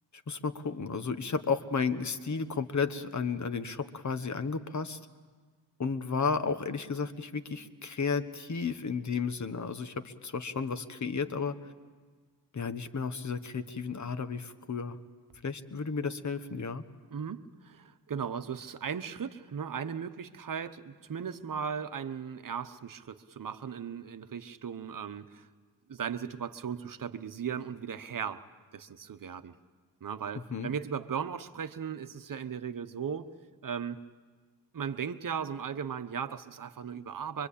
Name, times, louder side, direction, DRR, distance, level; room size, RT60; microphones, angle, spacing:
voice 1, 0.3-5.0 5.8-11.6 12.5-15.0 15.4-16.8 30.5-30.7, left 5 dB, 40° left, 10 dB, 1.3 m, -33 dB
voice 2, 17.1-25.5 25.9-28.5 28.7-29.6 30.0-33.3 33.6-34.0 34.7-37.5, right 7 dB, 50° right, 10 dB, 1.1 m, -37 dB
24.0 x 24.0 x 8.6 m, 1.5 s
cardioid pair, 90°, 43 cm